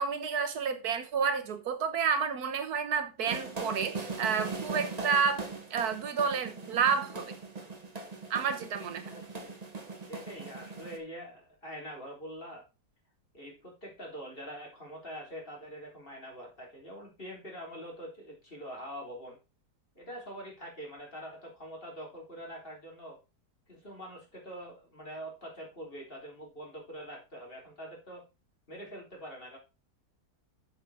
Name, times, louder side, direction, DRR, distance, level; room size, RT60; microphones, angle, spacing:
voice 1, 0.0-5.4 5.7-7.3 8.3-9.1, right 6 dB, 70° right, 1.4 m, -30 dB
sound 1, 3.3-11.0, right 3 dB, 30° right, 1.1 m, -40 dB
voice 2, 9.1-9.5 10.1-12.6 13.3-19.4 20.0-23.2 23.7-28.3 28.7-29.6, equal, 35° left, 3.5 m, -44 dB
7.8 x 6.7 x 4.1 m
omnidirectional pair, 1.7 m